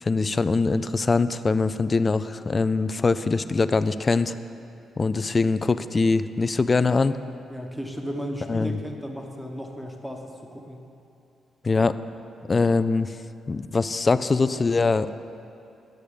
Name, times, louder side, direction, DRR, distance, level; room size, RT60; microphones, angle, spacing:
voice 1, 0.0-4.3 5.0-7.2 8.5-8.8 11.6-11.9 12.5-13.1 13.5-15.1, left 4 dB, 35° left, 13 dB, 0.4 m, -22 dB
voice 2, 7.5-10.8, equal, ahead, 2 dB, 1.3 m, -35 dB
11.5 x 6.6 x 5.1 m, 2.8 s
supercardioid pair, 55°, 0 cm